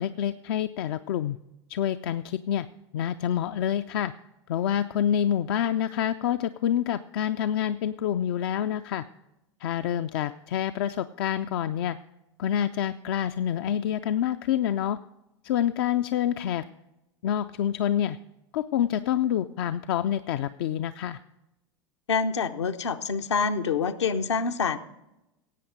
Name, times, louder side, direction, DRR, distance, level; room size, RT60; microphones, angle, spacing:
voice 1, 0.0-1.4 1.7-2.7 2.9-4.1 4.5-9.0 9.6-12.0 12.4-15.0 15.4-16.6 17.2-18.2 18.5-21.2, left 10 dB, 55° left, 11 dB, 0.5 m, -27 dB
voice 2, 22.1-24.8, left 5 dB, 70° left, 8 dB, 0.8 m, -26 dB
16.5 x 8.4 x 5.0 m, 0.93 s
figure-of-eight pair, 85°, 15 cm